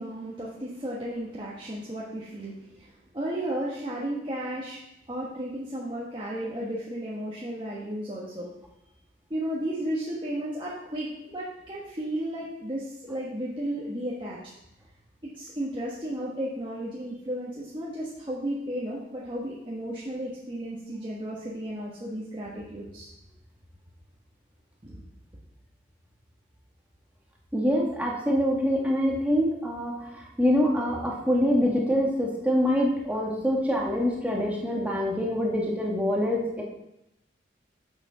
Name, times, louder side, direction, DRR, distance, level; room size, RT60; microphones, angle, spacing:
voice 1, 0.0-4.8 5.1-8.5 9.3-14.4 15.2-23.1 24.8-25.0, right 1 dB, 25° right, -6 dB, 1.3 m, -34 dB
voice 2, 27.5-36.6, equal, 10° right, -2 dB, 1.4 m, -25 dB
7.1 x 6.5 x 5.6 m, 0.86 s
head